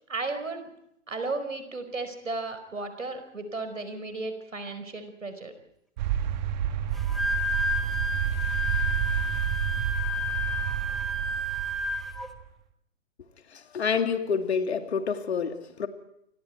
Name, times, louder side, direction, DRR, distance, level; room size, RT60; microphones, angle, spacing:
voice 1, 0.1-0.7 1.1-5.5, right 3 dB, 75° right, 4.9 m, -34 dB
sound 1, 6.0-12.4, right 9 dB, 35° right, 1.7 m, -30 dB
Wind instrument woodwind instrument, 7.0-12.3, left 1 dB, ahead, 1.2 m, -31 dB
voice 2, 13.5-15.9, left 6 dB, 55° left, 2.6 m, -28 dB
28.5 x 25.0 x 4.6 m
figure-of-eight pair, 120°, 39 cm